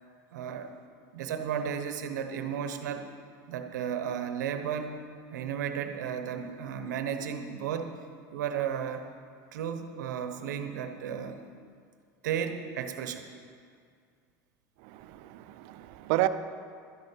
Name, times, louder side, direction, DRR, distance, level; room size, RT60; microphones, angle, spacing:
voice 1, 0.3-0.7 1.1-3.1 3.5-5.0 5.3-8.0 8.3-9.0 9.5-11.4 12.2-13.3, right 8 dB, 85° right, 8 dB, 1.0 m, -34 dB
voice 2, 14.9-16.3, right 17 dB, 70° right, 11 dB, 0.6 m, -30 dB
12.5 x 10.5 x 4.4 m, 2.2 s
supercardioid pair, 90°, 9 cm